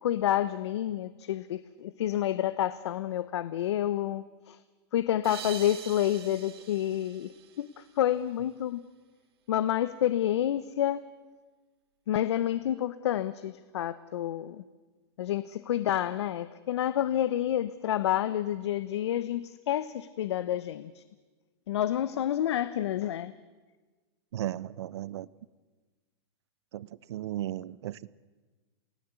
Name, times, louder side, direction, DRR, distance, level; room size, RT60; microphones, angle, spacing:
voice 1, 0.0-4.6 4.9-7.3 7.6-8.8 9.5-11.1 12.1-14.6 15.2-21.0 21.7-23.3, left 11 dB, 80° left, 0.9 m, -29 dB
sound 1, 5.2-8.3, right 10 dB, 65° right, 2.9 m, -45 dB
voice 2, 24.3-25.3 26.7-28.1, right 13 dB, 85° right, 0.8 m, -35 dB
28.5 x 18.5 x 8.2 m
supercardioid pair, 170°, 14 cm